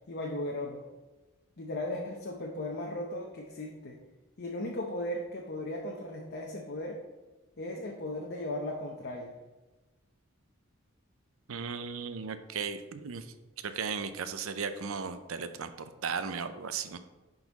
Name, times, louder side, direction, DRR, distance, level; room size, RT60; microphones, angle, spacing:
voice 1, 0.1-0.8 1.6-4.0 4.4-7.0 7.6-9.3, left 1 dB, 50° left, 0 dB, 0.8 m, -36 dB
voice 2, 11.5-13.3 13.6-17.0, right 5 dB, 70° right, 10 dB, 0.6 m, -36 dB
10.5 x 4.0 x 4.0 m, 1.2 s
head